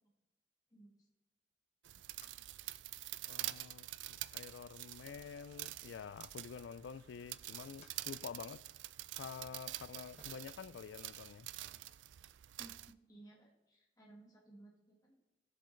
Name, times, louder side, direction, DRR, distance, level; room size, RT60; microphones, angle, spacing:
voice 1, 0.7-1.1 12.6-15.2, right 2 dB, 20° left, 1.5 m, -59 dB
sound 1, 1.8-12.9, right 15 dB, 80° right, 0.4 m, -47 dB
sound 2, 2.2-2.4 2.7-3.7 4.2-4.3 5.0-6.1 7.5-8.0 8.3-8.7 9.0-9.1 9.7-9.8 10.1-11.3, left 1 dB, 35° left, 1.3 m, -66 dB
voice 2, 3.3-8.6 9.2-11.5, left 6 dB, 80° left, 0.3 m, -49 dB
Laughter, 5.0-8.2, left 1 dB, 60° left, 0.9 m, -75 dB
18.0 x 7.7 x 3.2 m
head